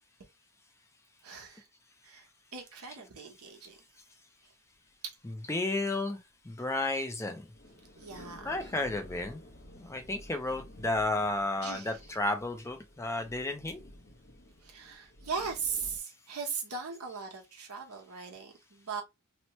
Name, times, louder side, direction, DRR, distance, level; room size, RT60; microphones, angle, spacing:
voice 1, 1.2-1.7 2.0-3.8 5.0-5.2 8.0-8.7 11.6-12.0 14.6-19.0, right 5 dB, 85° right, 1.0 m, -39 dB
sound 1, 4.9-5.2 5.7-5.8 6.9-7.0 7.4-16.0, left 1 dB, 50° left, 0.8 m, -52 dB
voice 2, 5.2-6.2 6.4-7.4 8.2-9.4 9.7-13.8, left 2 dB, 15° left, 0.4 m, -32 dB
2.9 x 2.1 x 2.9 m
head